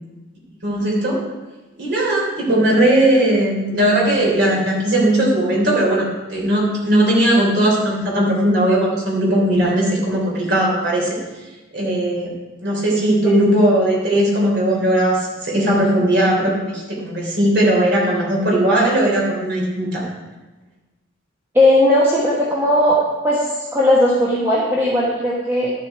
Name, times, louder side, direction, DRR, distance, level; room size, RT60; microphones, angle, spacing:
voice 1, 0.6-1.2 1.8-11.2 11.7-12.3 12.6-20.0, right 1 dB, 55° right, -3 dB, 3.2 m, -18 dB
voice 2, 21.5-23.0 23.2-25.7, left 1 dB, 10° right, -6 dB, 1.3 m, -17 dB
12.0 x 7.4 x 4.7 m, 1.1 s
head